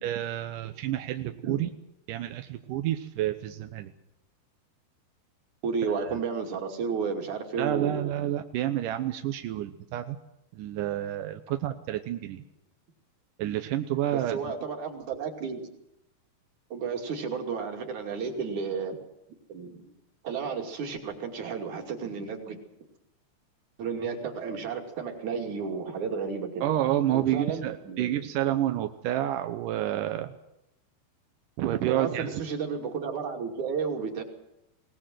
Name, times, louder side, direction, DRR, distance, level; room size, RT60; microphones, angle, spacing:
voice 1, 0.0-1.7 2.1-3.9 6.0-6.2 7.6-10.2 10.5-12.4 13.4-14.5 26.6-30.3 31.6-32.4, right 12 dB, 75° right, 7 dB, 2.0 m, -29 dB
voice 2, 5.6-8.1 14.1-15.7 16.7-19.0 19.5-19.9 20.2-22.6 23.8-26.7 27.1-28.1 31.9-34.2, right 5 dB, 50° right, 3 dB, 3.7 m, -32 dB
21.5 x 19.0 x 7.6 m, 0.87 s
omnidirectional pair, 4.7 m